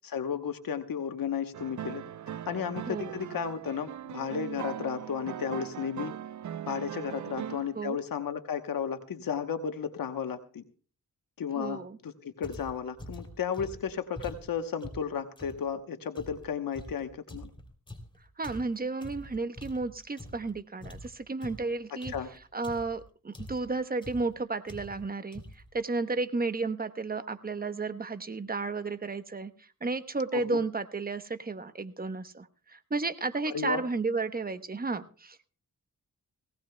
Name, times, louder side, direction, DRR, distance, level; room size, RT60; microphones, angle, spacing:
voice 1, 0.0-2.0 2.5-6.1 6.7-10.6 11.4-17.5 21.9-22.3 30.3-30.6 33.5-33.8, left 7 dB, 80° left, 8 dB, 1.1 m, -34 dB
sound 1, 1.5-7.8, right 10 dB, 60° right, 0.5 m, -40 dB
voice 2, 2.9-3.2 7.7-8.0 11.5-12.0 18.4-22.1 22.5-25.4 25.7-35.5, right 3 dB, 25° right, 10 dB, 1.0 m, -33 dB
sound 2, 12.4-15.6 16.1-20.5 20.8-23.0 23.3-23.7 24.0-24.3 24.7-25.1 25.3-25.7, left 1 dB, 15° left, 3.2 m, -45 dB
19.5 x 17.5 x 2.3 m, 0.40 s
cardioid pair, 80°, 34 cm